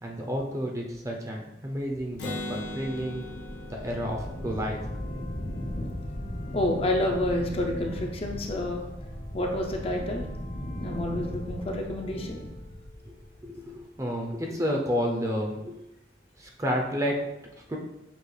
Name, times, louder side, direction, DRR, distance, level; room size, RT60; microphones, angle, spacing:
voice 1, 0.0-3.2 3.7-4.8 13.1-13.2 13.4-15.8 16.4-17.2 17.7-17.8, equal, 20° right, 1 dB, 0.5 m, -30 dB
sound 1, 2.0-14.0, equal, 50° left, 0.9 m, -37 dB
Acoustic guitar, 2.2-5.8, left 1 dB, 75° left, 0.6 m, -40 dB
voice 2, 6.5-8.8 9.3-10.3 10.8-12.4, left 1 dB, 35° left, 1 dB, 0.5 m, -29 dB
6.9 x 2.3 x 3.2 m, 0.90 s
head